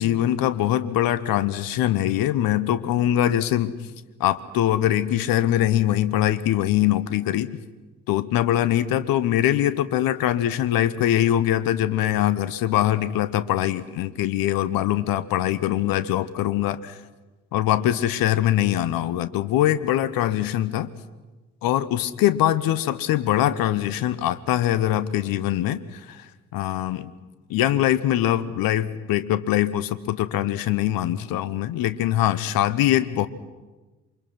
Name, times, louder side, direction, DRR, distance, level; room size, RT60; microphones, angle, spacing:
voice 1, 0.0-3.8 4.2-7.5 8.1-17.0 17.5-20.9 21.6-27.1 27.5-33.3, left 12 dB, 60° left, 14 dB, 1.2 m, -23 dB
27.5 x 24.5 x 6.2 m, 1.2 s
hypercardioid pair, 45°, 39 cm